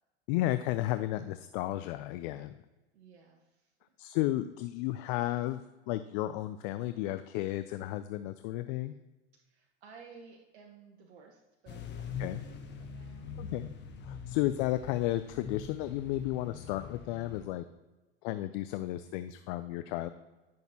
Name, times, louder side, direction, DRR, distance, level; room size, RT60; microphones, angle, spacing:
voice 1, 0.3-2.6 4.0-9.0 12.2-12.4 13.4-13.7 14.0-17.6 18.2-20.1, left 15 dB, 50° left, 11 dB, 0.5 m, -33 dB
voice 2, 2.9-3.7 9.3-13.4 14.1-14.3, right 5 dB, 70° right, 1 dB, 1.1 m, -56 dB
sound 1, 11.7-17.5, left 6 dB, 30° left, 1.1 m, -43 dB
10.0 x 6.4 x 2.8 m, 1.1 s
hypercardioid pair, 90°, 33 cm